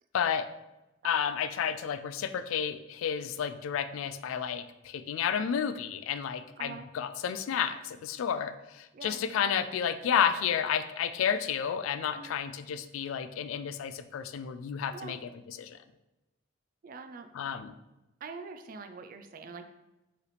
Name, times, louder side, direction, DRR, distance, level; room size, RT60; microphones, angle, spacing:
voice 1, 0.1-0.5 1.0-15.8 17.3-17.7, left 8 dB, 80° left, 11 dB, 0.3 m, -31 dB
voice 2, 16.8-17.3 18.2-19.8, right 4 dB, 45° right, 8 dB, 0.3 m, -44 dB
4.7 x 3.1 x 3.3 m, 1.0 s
head